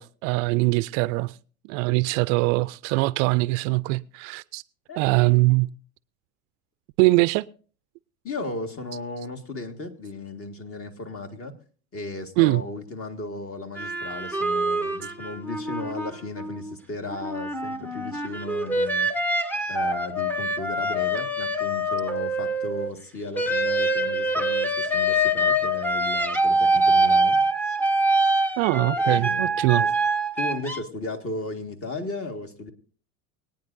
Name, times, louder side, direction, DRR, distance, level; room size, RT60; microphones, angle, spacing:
voice 1, 0.0-1.3 1.7-4.6 5.0-5.7 7.0-7.5 12.4-12.6 28.6-29.8, right 22 dB, 55° right, 0.5 m, -22 dB
voice 2, 4.9-5.4 8.2-11.5 11.9-27.4 29.0-29.9 30.4-32.7, left 2 dB, 30° left, 1.9 m, -35 dB
sound 1, 13.8-16.7 17.1-22.9 23.4-30.8, right 1 dB, 5° left, 0.9 m, -24 dB
24.5 x 9.3 x 2.6 m
hypercardioid pair, 105°, 46 cm